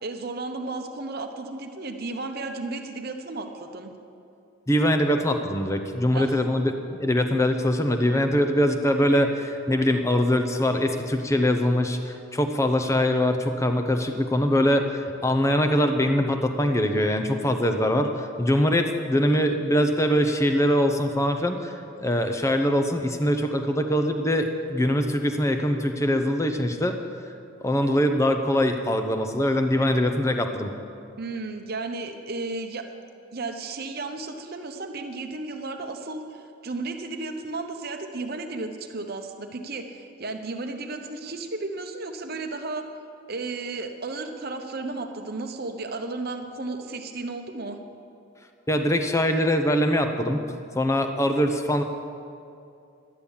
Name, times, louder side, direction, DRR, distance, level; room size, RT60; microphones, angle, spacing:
voice 1, 0.0-3.9 6.1-6.3 31.2-32.9 33.3-42.9 43.3-47.8, right 3 dB, 45° right, 5 dB, 0.9 m, -34 dB
voice 2, 4.7-27.0 27.6-30.7 48.7-50.4 50.7-51.8, equal, 15° left, 6 dB, 0.7 m, -23 dB
11.5 x 10.0 x 7.2 m, 2.5 s
head